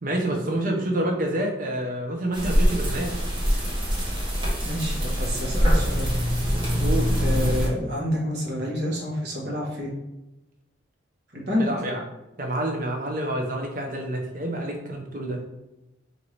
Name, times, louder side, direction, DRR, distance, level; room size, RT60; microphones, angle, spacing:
voice 1, 0.0-3.1 6.8-7.2 11.6-12.0 12.4-15.4, right 1 dB, 45° right, 2 dB, 0.7 m, -28 dB
sound 1, 2.3-7.7, equal, 25° right, 1.1 m, -23 dB
voice 2, 4.6-6.1 7.1-9.9 11.3-11.7, equal, 60° right, -3 dB, 1.2 m, -28 dB
4.5 x 2.6 x 3.3 m, 0.96 s
head